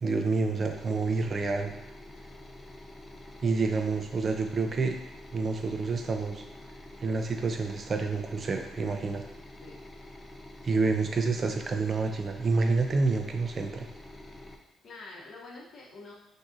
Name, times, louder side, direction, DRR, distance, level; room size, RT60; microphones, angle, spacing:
voice 1, 0.0-1.7 3.4-5.0 5.3-6.4 7.0-9.2 10.6-13.9, right 4 dB, 45° right, 5 dB, 0.6 m, -28 dB
sound 1, 0.7-14.6, left 1 dB, 20° left, 0.7 m, -47 dB
voice 2, 14.8-16.1, left 3 dB, 50° left, -3 dB, 0.9 m, -47 dB
5.9 x 2.8 x 2.6 m, 0.87 s
hypercardioid pair, 55°, 0 cm